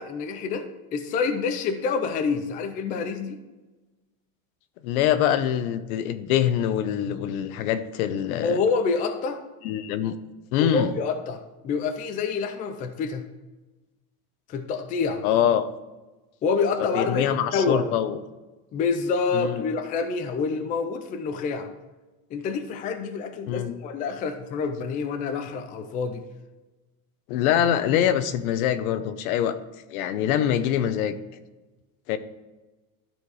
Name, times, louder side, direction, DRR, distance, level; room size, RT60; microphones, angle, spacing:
voice 1, 0.0-3.4 8.4-9.4 10.6-13.2 14.5-15.2 16.4-17.9 18.7-21.7 22.3-26.2, left 5 dB, 20° left, 7 dB, 0.4 m, -27 dB
voice 2, 4.8-8.6 9.6-10.2 10.5-10.9 15.2-15.7 16.8-18.2 19.3-19.6 23.5-23.7 27.3-29.6 29.9-31.2 32.1-32.2, left 10 dB, 75° left, 12 dB, 0.9 m, -24 dB
12.5 x 4.5 x 4.8 m, 1.1 s
supercardioid pair, 160°, 43 cm